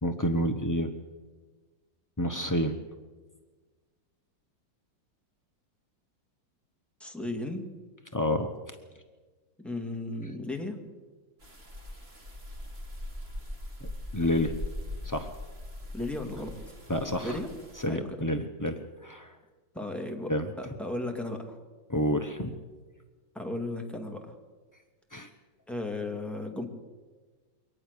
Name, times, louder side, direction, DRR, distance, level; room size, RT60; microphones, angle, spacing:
voice 1, 0.0-0.9 2.2-2.8 8.1-8.7 13.8-14.6 15.0-15.3 16.9-17.4 17.7-19.4 20.3-20.5 21.9-22.6 25.1-25.3, left 1 dB, 25° left, 6 dB, 0.4 m, -29 dB
voice 2, 7.0-7.7 9.6-10.8 15.9-16.5 17.2-17.5 17.9-18.1 19.7-20.3 20.6-21.6 23.3-24.4 25.7-26.6, left 2 dB, ahead, 3 dB, 2.2 m, -35 dB
sound 1, 11.4-17.9, left 1 dB, 35° right, 3.3 m, -41 dB
23.0 x 18.5 x 6.8 m, 1.4 s
omnidirectional pair, 2.0 m